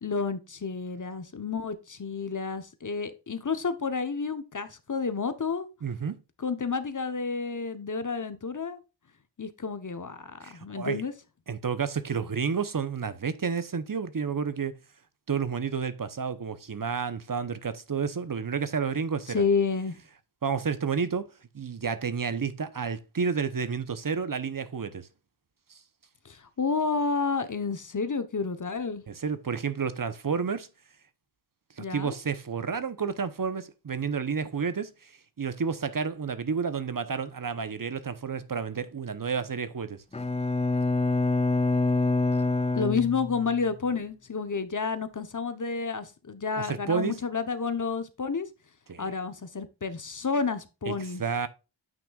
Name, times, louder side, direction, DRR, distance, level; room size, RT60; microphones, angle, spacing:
voice 1, 0.0-5.7 6.4-8.8 9.4-11.1 19.3-20.0 26.2-29.0 31.8-32.2 42.3-42.4 42.7-48.5 49.0-51.2, left 5 dB, 40° left, 0.9 m, -30 dB
voice 2, 5.8-6.1 10.4-11.0 11.5-14.7 15.3-19.4 20.4-21.3 21.5-25.1 29.1-30.7 31.8-35.1 35.4-40.0 46.6-47.2 48.9-49.1 50.9-51.0 51.2-51.5, right 6 dB, 45° right, 0.8 m, -30 dB
Bowed string instrument, 40.1-43.7, left 3 dB, 15° left, 0.4 m, -26 dB
9.2 x 6.0 x 2.3 m
wide cardioid pair, 95°, 46 cm